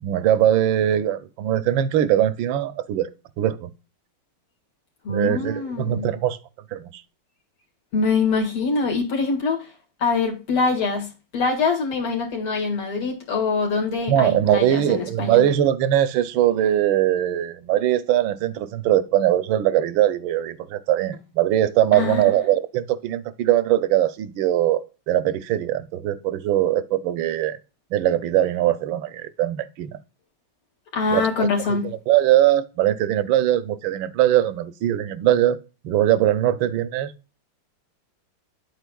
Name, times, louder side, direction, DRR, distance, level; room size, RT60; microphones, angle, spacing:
voice 1, 0.0-3.1 3.4-3.7 5.1-6.4 6.7-7.0 14.1-27.6 27.9-30.0 31.1-31.5 31.8-35.6 35.8-37.1, right 12 dB, 75° right, 1.3 m, -21 dB
voice 2, 5.0-6.1 7.9-9.7 10.0-11.1 11.3-15.4 21.9-22.3 30.9-31.9, left 4 dB, 75° left, 2.7 m, -24 dB
9.7 x 8.1 x 2.3 m
omnidirectional pair, 2.4 m